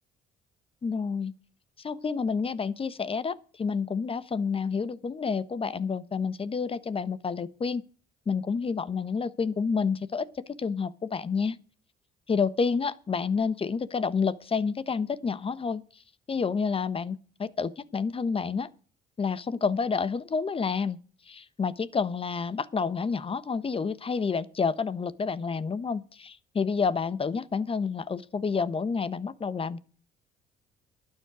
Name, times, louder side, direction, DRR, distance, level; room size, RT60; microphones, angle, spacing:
voice 1, 0.8-1.3 1.8-7.8 8.3-11.6 12.3-15.8 16.3-18.7 19.2-21.0 21.3-29.8, left 5 dB, 35° left, 1.1 m, -29 dB
12.0 x 9.7 x 6.2 m
supercardioid pair, 70°, 17 cm